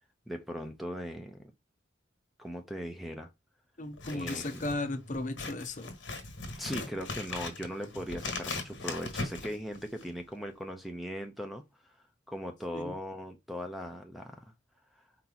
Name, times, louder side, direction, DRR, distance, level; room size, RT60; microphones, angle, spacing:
voice 1, 0.3-1.5 2.4-3.3 4.1-4.6 6.6-11.9 12.3-14.5, equal, ahead, 0.6 m, -39 dB
voice 2, 3.8-6.0 12.7-13.0, left 2 dB, 40° left, 0.7 m, -35 dB
Scissors, 3.9-10.2, left 3 dB, 85° left, 1.5 m, -39 dB
4.6 x 2.9 x 3.9 m
head